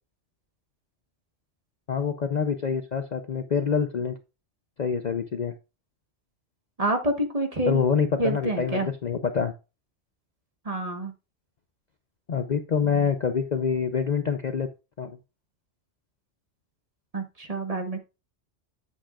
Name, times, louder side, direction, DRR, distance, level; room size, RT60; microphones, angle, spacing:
voice 1, 1.9-4.2 4.8-5.5 7.7-9.5 12.3-14.7 15.0-15.2, left 6 dB, 45° left, 8 dB, 0.6 m, -26 dB
voice 2, 6.8-7.8 8.2-8.9 10.6-11.1 17.1-18.0, right 1 dB, 30° right, 5 dB, 1.2 m, -27 dB
8.8 x 7.5 x 2.4 m, 0.28 s
omnidirectional pair, 1.2 m